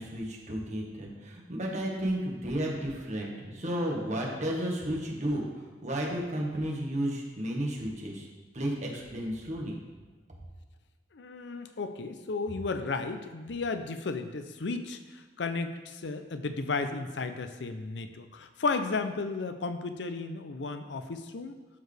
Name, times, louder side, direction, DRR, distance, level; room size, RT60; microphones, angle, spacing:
voice 1, 0.0-8.3 8.5-9.8, right 1 dB, 45° right, -1 dB, 1.5 m, -33 dB
voice 2, 11.1-21.6, left 3 dB, 90° left, 9 dB, 0.6 m, -34 dB
12.0 x 4.7 x 3.4 m, 1.3 s
head